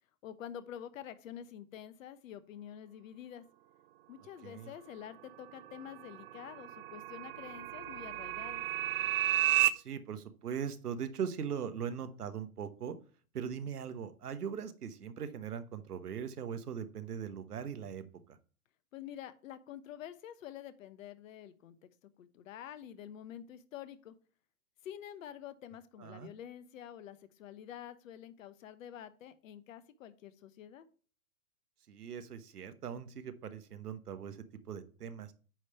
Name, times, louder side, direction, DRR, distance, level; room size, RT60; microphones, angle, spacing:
voice 1, 0.2-3.4 4.1-8.6 18.9-21.9 22.2-24.1 24.8-30.9, left 10 dB, 60° left, 13 dB, 1.0 m, -48 dB
sound 1, 5.4-9.7, right 15 dB, 40° right, 0.5 m, -33 dB
voice 2, 9.7-13.0 13.3-18.4 26.0-26.3 31.9-34.4 34.7-35.3, right 7 dB, 90° right, 11 dB, 1.1 m, -40 dB
9.3 x 3.3 x 5.6 m, 0.40 s
hypercardioid pair, 130°, 44 cm